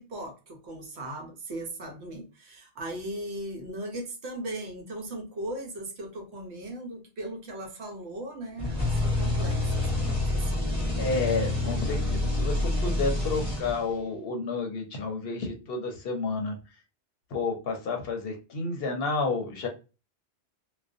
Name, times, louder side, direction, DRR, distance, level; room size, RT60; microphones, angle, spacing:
voice 1, 0.0-10.8, right 1 dB, 70° right, 2 dB, 1.0 m, -38 dB
sound 1, 8.6-14.1, left 2 dB, 5° right, 1.0 m, -27 dB
voice 2, 11.0-16.6 17.3-19.7, left 3 dB, 65° left, 2 dB, 0.7 m, -30 dB
2.4 x 2.1 x 2.4 m, 0.31 s
omnidirectional pair, 1.2 m